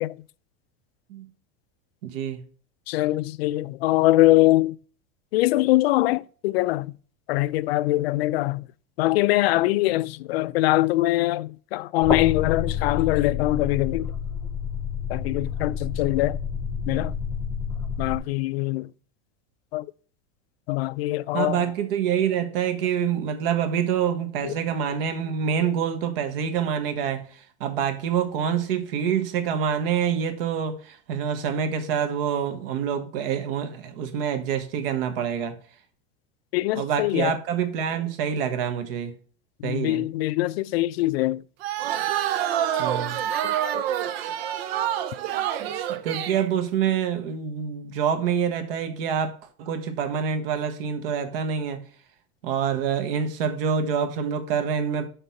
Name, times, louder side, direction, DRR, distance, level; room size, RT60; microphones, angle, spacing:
voice 1, 2.0-2.4 21.3-35.6 36.7-39.1 39.6-40.0 42.8-43.2 45.6-51.9 52.4-55.1, right 7 dB, 70° right, 1.5 m, -26 dB
voice 2, 2.9-4.8 5.3-6.9 7.3-8.7 9.0-14.1 15.1-16.4 16.9-17.2 18.0-18.9 19.7-19.9 20.7-21.6 24.4-24.6 36.5-37.4 39.6-41.4 43.4-43.8, left 17 dB, 85° left, 0.5 m, -23 dB
sound 1, 12.0-18.2, left 7 dB, 5° left, 0.6 m, -29 dB
sound 2, 41.6-46.5, right 10 dB, 85° right, 0.9 m, -27 dB
6.6 x 4.0 x 5.7 m
supercardioid pair, 175°, 30 cm